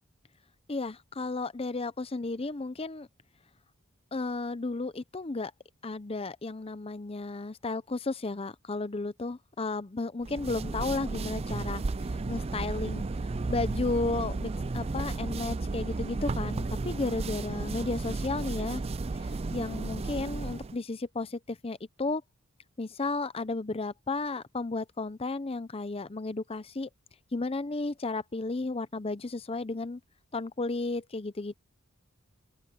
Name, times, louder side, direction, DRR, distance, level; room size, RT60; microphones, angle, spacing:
voice 1, 0.7-3.1 4.1-5.5 5.8-11.8 12.3-13.0 13.5-18.8 19.5-22.2 22.8-26.9 27.3-30.0 30.3-31.5, left 3 dB, 25° left, 0.6 m, -33 dB
sound 1, 10.2-20.8, right 3 dB, 30° right, 0.4 m, -33 dB
open air
head